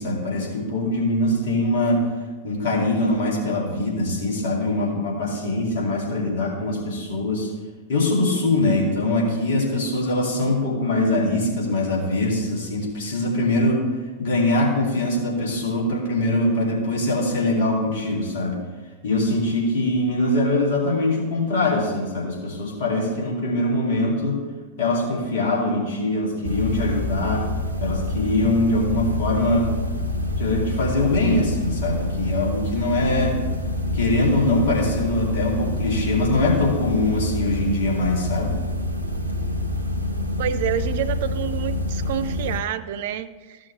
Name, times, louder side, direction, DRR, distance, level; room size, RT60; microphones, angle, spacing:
voice 1, 0.0-2.1 2.4-7.5 7.9-13.8 14.2-18.6 19.0-24.4 24.8-27.5 27.8-29.7 30.4-33.4 33.9-38.6, left 2 dB, 55° left, -3 dB, 2.4 m, -22 dB
sound 1, 26.4-42.6, left 1 dB, 80° right, 0.8 m, -27 dB
voice 2, 40.4-43.6, right 9 dB, 55° right, 12 dB, 0.4 m, -28 dB
14.0 x 6.2 x 3.2 m, 1.3 s
figure-of-eight pair, 90°, 0 cm